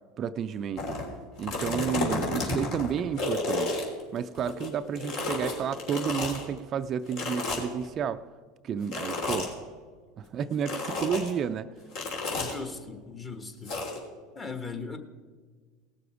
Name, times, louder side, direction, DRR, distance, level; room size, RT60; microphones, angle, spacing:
voice 1, 0.2-1.0 1.4-3.8 4.1-8.2 8.6-9.5 10.2-11.7, right 7 dB, 40° right, 11 dB, 0.4 m, -31 dB
sound 1, 0.8-1.0 1.4-4.7 5.0-6.4 7.1-7.9 8.9-9.5 10.6-11.3 11.9-12.6 13.7-14.0, left 2 dB, 65° left, 3.2 m, -31 dB
voice 2, 12.3-13.7 14.3-15.0, left 4 dB, 25° left, 7 dB, 1.4 m, -38 dB
18.0 x 6.9 x 4.9 m, 1.5 s
hypercardioid pair, 90°, 0 cm